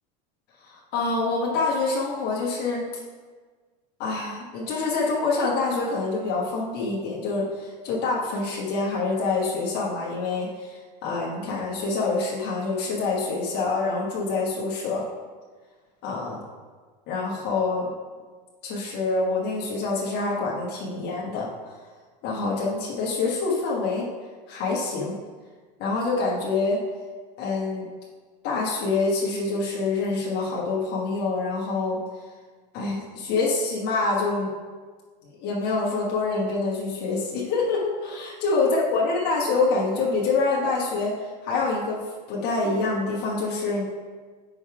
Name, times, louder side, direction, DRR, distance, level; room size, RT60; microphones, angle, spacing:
voice 1, 0.6-2.9 4.0-15.0 16.0-16.4 17.1-17.9 18.6-21.5 22.2-24.1 24.5-25.2 25.8-26.8 27.4-27.9 28.4-32.0 32.7-34.5 35.4-42.0 42.3-43.9, left 3 dB, 50° left, -4 dB, 1.3 m, -26 dB
5.3 x 4.8 x 4.7 m, 1.5 s
supercardioid pair, 135°, 21 cm